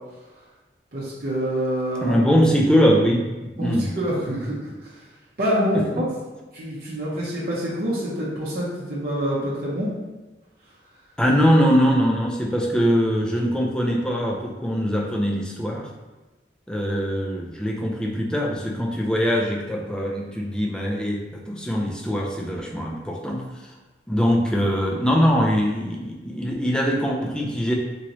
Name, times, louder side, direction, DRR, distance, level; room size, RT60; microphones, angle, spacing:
voice 1, 0.9-2.2 3.6-5.1 5.4-6.0 6.5-9.9, equal, 55° right, -8 dB, 0.7 m, -26 dB
voice 2, 2.0-3.9 11.2-15.9 16.7-23.5 24.1-27.7, equal, 5° left, -1 dB, 0.3 m, -22 dB
3.0 x 2.9 x 2.6 m, 1.2 s
head